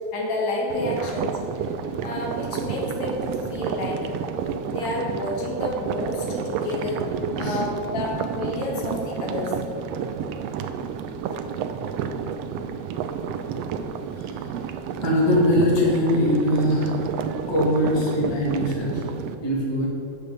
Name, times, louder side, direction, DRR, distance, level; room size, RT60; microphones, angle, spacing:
voice 1, 0.1-1.7 2.0-4.1 4.7-9.6, left 2 dB, 70° left, -1 dB, 2.8 m, -30 dB
sound 1, 0.7-19.3, right 7 dB, 80° right, 1.5 m, -30 dB
voice 2, 7.3-7.6 12.4-12.5 14.1-14.4 14.9-17.0 17.5-19.0 19.4-19.9, left 1 dB, 10° left, -4 dB, 1.4 m, -22 dB
8.2 x 6.9 x 6.7 m, 2.9 s
omnidirectional pair, 3.4 m